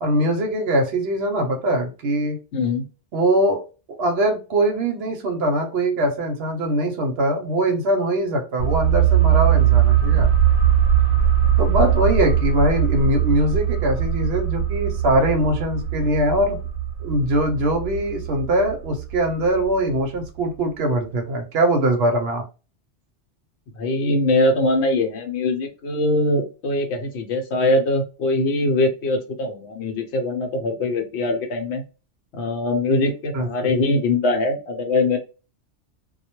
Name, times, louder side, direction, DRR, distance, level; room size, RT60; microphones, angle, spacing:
voice 1, 0.0-2.4 3.1-3.6 4.0-10.3 11.6-16.6 17.0-22.4 33.3-33.5, right 1 dB, 65° right, 4 dB, 0.8 m, -22 dB
voice 2, 2.5-2.9 23.8-31.8 32.3-35.2, left 2 dB, 70° left, 4 dB, 0.9 m, -22 dB
sound 1, 8.6-20.0 20.3-20.4, right 9 dB, 85° right, 1.0 m, -20 dB
2.2 x 2.1 x 2.9 m, 0.32 s
omnidirectional pair, 1.2 m